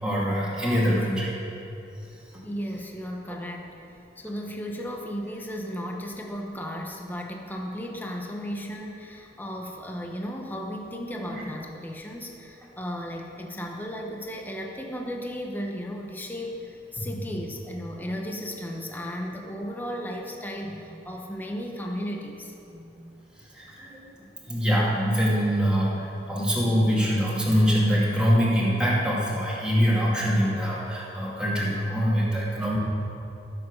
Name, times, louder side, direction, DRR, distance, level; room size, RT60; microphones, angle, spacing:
voice 1, 0.0-1.3 11.3-11.4 17.0-17.1 20.6-20.7 22.7-22.9 23.4-24.1 24.4-32.8, equal, 5° right, -7 dB, 2.4 m, -24 dB
voice 2, 2.4-22.5, equal, 10° left, 0 dB, 1.0 m, -35 dB
14.5 x 7.5 x 6.4 m, 2.7 s
head